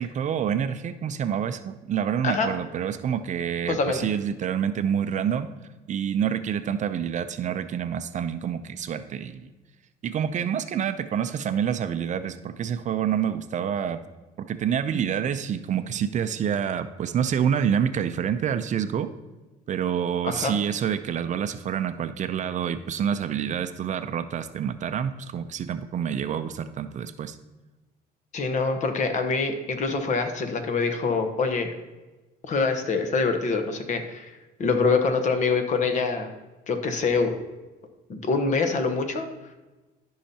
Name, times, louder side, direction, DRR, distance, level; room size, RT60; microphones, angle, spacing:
voice 1, 0.0-5.5 5.9-9.5 10.0-14.0 14.5-19.1 19.7-27.4, right 8 dB, 45° right, 10 dB, 0.5 m, -27 dB
voice 2, 3.7-4.1 20.2-20.6 28.3-31.7 32.5-36.3 36.7-37.4 38.1-39.3, left 4 dB, 45° left, 6 dB, 1.1 m, -25 dB
13.5 x 5.6 x 2.8 m, 1.2 s
cardioid pair, 110°, 17 cm